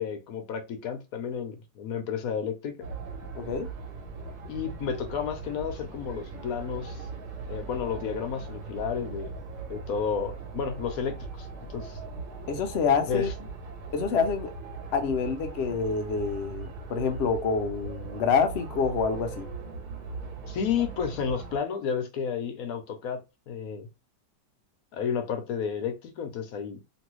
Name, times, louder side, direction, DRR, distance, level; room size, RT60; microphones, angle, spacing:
voice 1, 0.0-2.8 4.5-7.1 7.5-9.3 9.7-12.0 13.1-13.3 20.5-23.2 23.5-23.9 24.9-26.8, left 7 dB, 65° left, 1.0 m, -32 dB
sound 1, 2.8-21.6, right 4 dB, 55° right, 1.0 m, -39 dB
voice 2, 3.3-3.7 12.5-13.3 13.9-14.5 14.9-19.4, left 5 dB, 85° left, 0.5 m, -27 dB
3.0 x 2.6 x 3.0 m
omnidirectional pair, 1.9 m